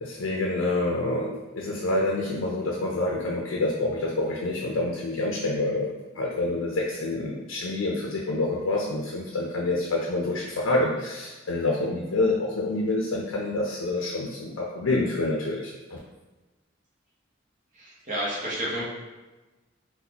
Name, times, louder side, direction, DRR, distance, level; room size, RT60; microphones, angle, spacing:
voice 1, 0.0-16.0, left 2 dB, 80° left, -2 dB, 0.5 m, -27 dB
voice 2, 17.7-18.9, equal, 40° right, -5 dB, 0.8 m, -30 dB
4.0 x 2.1 x 2.8 m, 1.2 s
head